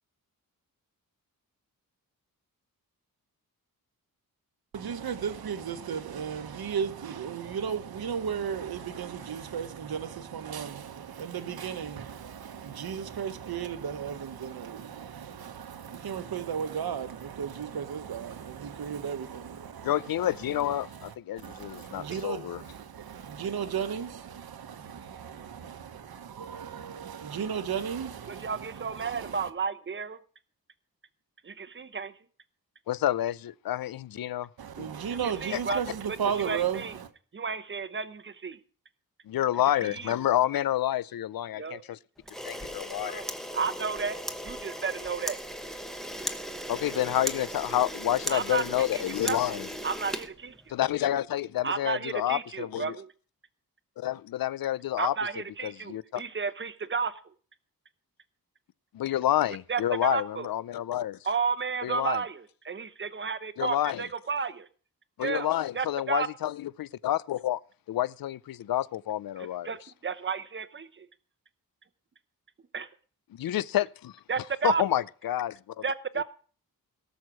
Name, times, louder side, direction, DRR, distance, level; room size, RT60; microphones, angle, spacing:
voice 1, 4.7-20.1 20.5-21.1 21.4-29.5 34.6-37.1, right 7 dB, 80° right, 1.1 m, -35 dB
voice 2, 19.8-22.6 32.9-34.5 35.5-35.6 39.3-42.0 42.4-43.2 46.7-49.7 50.7-53.0 54.0-55.2 55.6-56.2 58.9-61.2 61.8-62.2 63.6-64.0 65.2-67.6 67.9-69.8 73.3-74.1 74.6-75.8 76.2-76.3, left 12 dB, 70° left, 0.5 m, -29 dB
voice 3, 28.3-30.2 31.4-32.1 35.1-37.0 37.3-38.6 39.8-40.1 41.5-41.8 43.0-45.4 48.3-48.6 49.1-49.6 49.8-50.6 51.6-53.1 55.0-57.2 59.7-60.5 61.2-64.7 65.2-65.5 65.7-66.3 69.4-71.1 72.7-72.9 74.3-74.8 75.8-76.2, right 5 dB, 30° right, 0.8 m, -32 dB
Camera, 42.2-51.0, equal, ahead, 1.0 m, -37 dB
18.0 x 6.5 x 6.1 m
wide cardioid pair, 155°, 36 cm